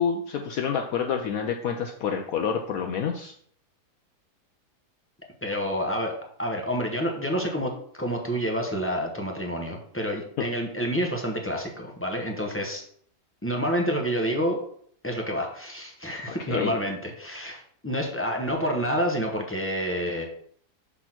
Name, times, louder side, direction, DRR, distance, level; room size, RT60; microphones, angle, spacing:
voice 1, 0.0-3.3 10.4-10.5 16.3-16.7, left 7 dB, 70° left, 4 dB, 1.0 m, -28 dB
voice 2, 5.4-6.1 6.4-12.8 13.4-14.6 15.0-20.2, equal, 10° left, 1 dB, 0.7 m, -28 dB
6.1 x 3.5 x 5.9 m, 0.62 s
omnidirectional pair, 1.7 m